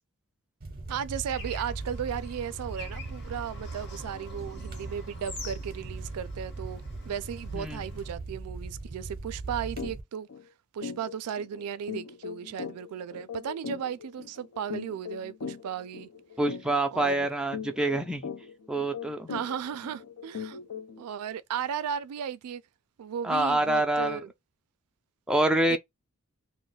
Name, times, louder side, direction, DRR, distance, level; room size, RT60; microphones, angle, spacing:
sound 1, 0.6-10.0, right 3 dB, 40° right, 0.6 m, -39 dB
voice 1, 0.9-10.3 10.7-16.1 16.9-17.3 19.3-20.6 21.0-22.6 23.0-24.3 25.7-25.8, right 8 dB, 85° right, 0.3 m, -35 dB
Bird / Traffic noise roadway noise, 1.3-8.1, left 3 dB, 50° left, 1.0 m, -48 dB
sound 2, 9.8-10.0 10.3-10.4 10.8-21.1, left 6 dB, 70° left, 0.4 m, -40 dB
voice 2, 16.4-18.3 18.7-19.3 23.2-24.2 25.3-25.8, right 1 dB, 5° right, 0.3 m, -26 dB
2.3 x 2.1 x 3.8 m
head